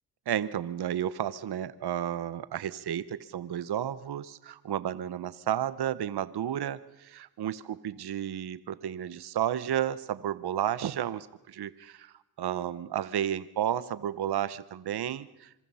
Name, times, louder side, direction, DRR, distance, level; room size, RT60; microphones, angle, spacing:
voice 1, 0.3-15.5, right 10 dB, 65° right, 16 dB, 1.0 m, -32 dB
26.0 x 25.0 x 5.6 m, 0.91 s
cardioid pair, 65°, 42 cm